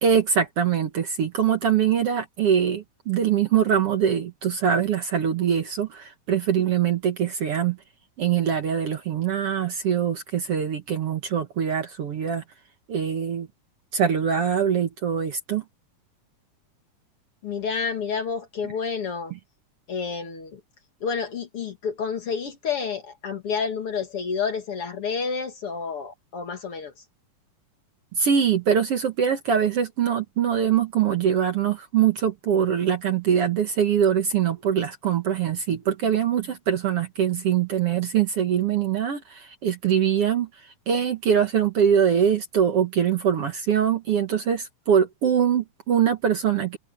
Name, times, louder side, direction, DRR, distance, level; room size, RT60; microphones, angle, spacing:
voice 1, 0.0-7.8 8.2-12.4 12.9-13.5 13.9-15.6 28.1-40.5 40.9-46.8, right 8 dB, 55° right, 2.0 m, -23 dB
voice 2, 17.4-19.3 19.9-20.6 21.0-26.9, left 5 dB, 50° left, 2.5 m, -29 dB
omnidirectional pair, 3.7 m